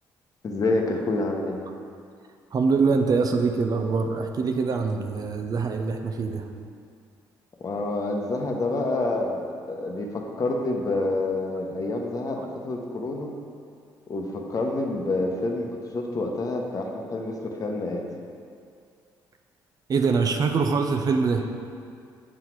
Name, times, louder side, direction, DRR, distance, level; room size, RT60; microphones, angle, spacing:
voice 1, 0.4-1.6 7.6-9.4 9.7-13.3 14.1-18.0, left 2 dB, 45° left, 1 dB, 0.9 m, -28 dB
voice 2, 2.5-6.5 19.9-21.5, right 4 dB, 45° right, 5 dB, 0.6 m, -24 dB
6.5 x 4.1 x 4.6 m, 2.3 s
supercardioid pair, 65°, 9 cm